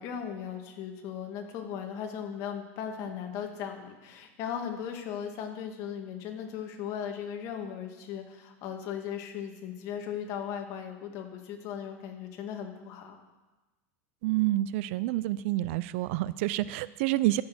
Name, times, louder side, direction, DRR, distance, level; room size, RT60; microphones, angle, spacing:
voice 1, 0.0-13.2, left 8 dB, 50° left, 3 dB, 2.1 m, -37 dB
voice 2, 14.2-17.4, right 16 dB, 65° right, 17 dB, 0.5 m, -28 dB
14.0 x 6.4 x 7.8 m, 1.2 s
supercardioid pair, 140°, 7 cm